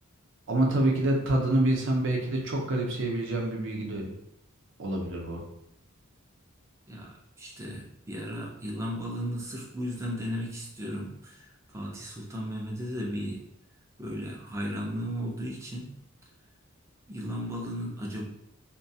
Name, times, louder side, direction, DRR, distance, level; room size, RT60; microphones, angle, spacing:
voice 1, 0.5-4.1 4.8-5.4, right 1 dB, 60° right, 0 dB, 0.6 m, -27 dB
voice 2, 6.9-13.4 14.0-15.9 17.1-18.2, equal, 15° right, -1 dB, 0.4 m, -35 dB
2.3 x 2.2 x 2.6 m, 0.73 s
head